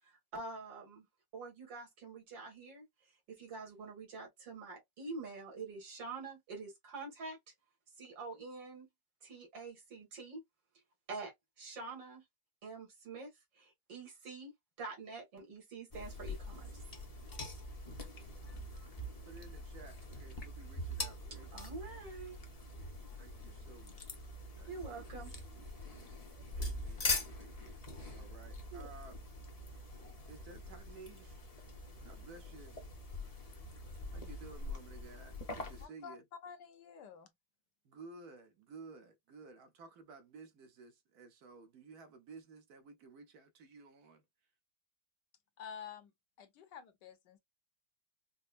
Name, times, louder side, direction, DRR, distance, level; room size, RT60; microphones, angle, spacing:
voice 1, 0.0-1.1 1.3-2.9 3.3-7.4 8.0-8.9 9.2-10.4 11.1-11.3 11.6-12.2 12.6-14.5 14.8-16.8 21.5-22.4 24.6-25.3 28.7-28.9, right 3 dB, 80° right, 2.5 m, -46 dB
sound 1, 15.9-35.9, left 2 dB, 40° left, 0.5 m, -43 dB
voice 2, 19.2-21.5 23.2-24.0 24.6-25.2 25.5-25.6 26.5-27.7 28.1-29.2 29.7-31.5 32.0-32.8 34.1-36.2 37.8-44.2, right 4 dB, 65° right, 1.1 m, -55 dB
voice 3, 35.8-36.2 36.4-37.3 45.6-46.1 46.4-47.4, left 7 dB, 70° left, 1.3 m, -50 dB
5.3 x 2.1 x 2.4 m
omnidirectional pair, 2.0 m